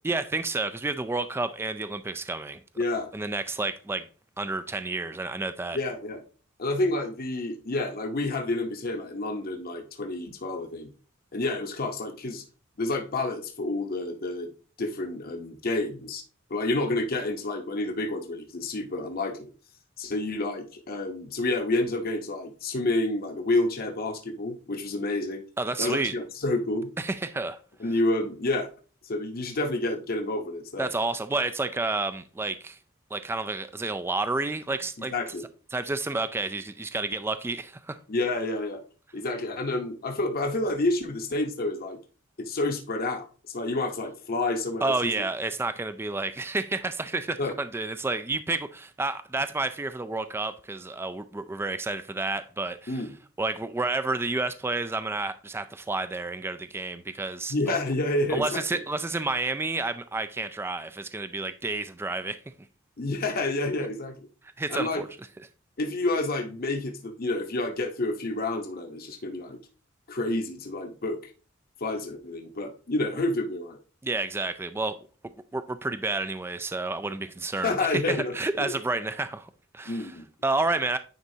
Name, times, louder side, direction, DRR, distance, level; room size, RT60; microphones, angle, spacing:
voice 1, 0.0-2.6 3.1-4.1 4.4-5.8 25.6-26.1 27.0-27.6 30.8-32.8 33.1-35.1 35.7-38.0 44.8-53.0 53.4-57.8 58.3-62.4 64.6-65.1 74.0-75.0 75.5-80.2 80.4-81.0, right 3 dB, 10° right, 0.3 m, -30 dB
voice 2, 2.8-3.1 5.7-6.2 6.6-10.9 11.3-12.4 12.8-14.5 14.8-16.2 16.5-19.5 20.0-25.4 25.8-26.9 27.8-28.7 29.0-30.9 35.0-35.4 38.1-38.8 39.1-42.0 42.4-45.1 47.4-47.6 52.9-53.1 57.5-58.8 63.0-64.3 64.7-65.0 65.8-69.6 70.1-71.2 71.8-73.8 77.6-78.3 78.6-78.7 79.9-80.2, left 2 dB, 45° left, 0.9 m, -29 dB
9.6 x 4.1 x 2.7 m
head